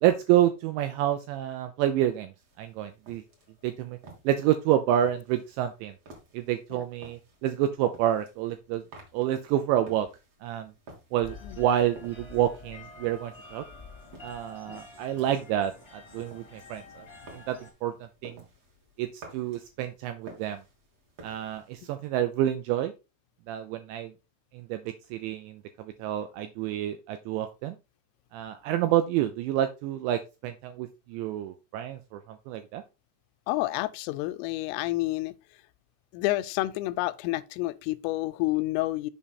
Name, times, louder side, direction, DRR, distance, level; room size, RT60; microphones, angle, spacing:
voice 1, 0.0-3.2 3.6-4.0 4.3-5.9 6.3-8.8 9.1-10.1 10.4-10.7 11.1-13.6 14.2-17.1 17.3-17.9 18.2-18.4 19.0-20.6 21.2-22.9 23.5-24.1 24.5-24.8 25.1-27.8 28.3-32.8, right 11 dB, 85° right, 2.6 m, -28 dB
sound 1, 2.4-21.9, right 2 dB, 50° right, 1.9 m, -54 dB
sound 2, 11.2-17.7, left 3 dB, 30° left, 0.4 m, -48 dB
voice 2, 33.5-35.4 36.1-39.1, left 18 dB, 90° left, 3.2 m, -29 dB
7.2 x 5.4 x 4.1 m
omnidirectional pair, 5.8 m